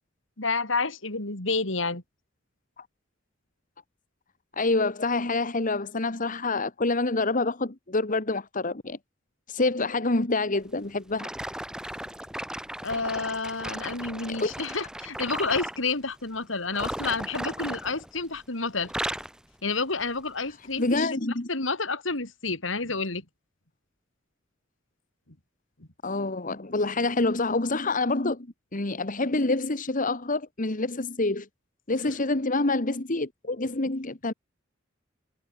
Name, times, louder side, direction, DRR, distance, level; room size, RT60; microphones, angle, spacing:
voice 1, 0.4-2.0 12.8-18.9 19.6-21.2 21.5-23.2 25.8-25.9, left 3 dB, 75° left, 4.0 m, -29 dB
voice 2, 4.5-9.0 9.5-11.3 14.4-14.5 20.8-21.5 26.0-28.5 28.7-31.5 31.9-34.3, left 2 dB, 45° left, 1.7 m, -27 dB
sound 1, 11.2-15.8 16.7-18.5 18.8-19.4 20.0-20.2 20.9-21.0, right 1 dB, 5° right, 1.9 m, -36 dB
head